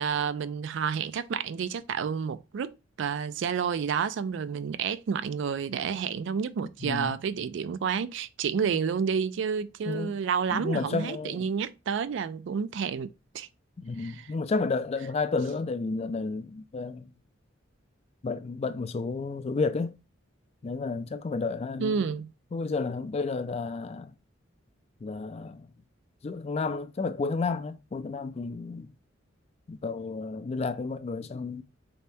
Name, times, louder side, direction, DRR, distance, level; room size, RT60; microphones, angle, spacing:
voice 1, 0.0-13.5 14.0-14.3 21.8-22.3, right 6 dB, 65° right, 0.3 m, -30 dB
voice 2, 6.8-7.2 9.9-10.2 10.5-11.4 13.8-17.1 18.2-20.0 20.6-22.0 22.5-24.1 25.0-25.7 26.2-28.9 29.7-31.6, left 4 dB, 30° left, 0.3 m, -31 dB
4.2 x 2.8 x 3.3 m
head